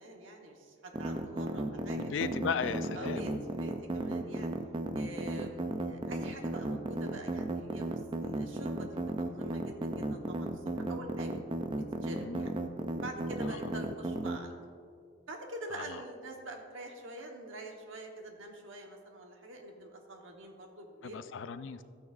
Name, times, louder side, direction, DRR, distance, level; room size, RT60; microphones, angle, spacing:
voice 1, 0.0-2.1 2.9-4.5 4.9-11.3 12.0-12.5 13.0-14.5 15.3-21.2, right 1 dB, 75° right, 2 dB, 1.1 m, -46 dB
sound 1, 0.9-14.4, right 2 dB, 25° right, 0.4 m, -34 dB
voice 2, 1.9-3.3 12.1-12.5 13.5-13.6 15.7-15.8 21.0-21.8, left 6 dB, 70° left, 12 dB, 0.4 m, -36 dB
13.0 x 9.3 x 2.4 m, 2.2 s
head